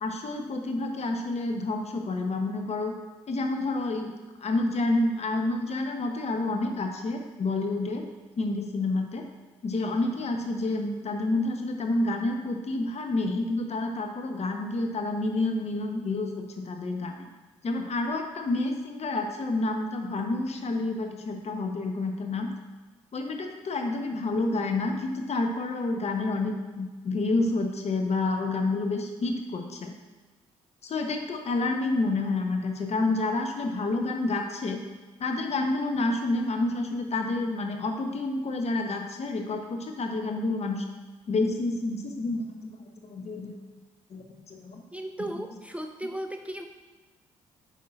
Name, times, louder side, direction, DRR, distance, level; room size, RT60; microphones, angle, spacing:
voice 1, 0.0-2.9 3.3-4.1 4.4-8.0 8.4-9.3 9.6-17.3 17.6-22.5 23.1-29.9 30.8-34.9 35.2-40.8 41.3-42.8 43.0-43.5 44.1-44.8, left 2 dB, 45° left, 4 dB, 1.0 m, -29 dB
voice 2, 44.9-46.7, right 1 dB, 10° right, 5 dB, 0.5 m, -35 dB
9.4 x 5.5 x 2.5 m, 1.3 s
figure-of-eight pair, 40°, 16 cm